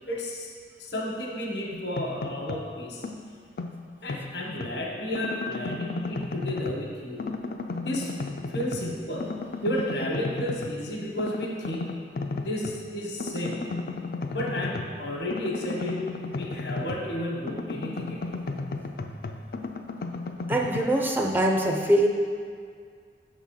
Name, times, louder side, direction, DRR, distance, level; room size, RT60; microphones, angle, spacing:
voice 1, 0.1-0.5 0.8-3.0 4.0-7.5 7.8-8.1 8.5-9.3 9.6-12.1 12.4-13.8 14.3-18.2, equal, 75° left, -1 dB, 1.1 m, -32 dB
sound 1, 1.7-2.7 3.0-4.8 5.1-6.9 7.2-8.9 9.2-10.8 11.2-12.8 13.2-17.2 17.5-20.8, left 3 dB, 55° left, 0.4 m, -34 dB
voice 2, 20.5-22.1, right 1 dB, 10° right, 1 dB, 0.4 m, -23 dB
6.8 x 3.6 x 5.7 m, 2.1 s
head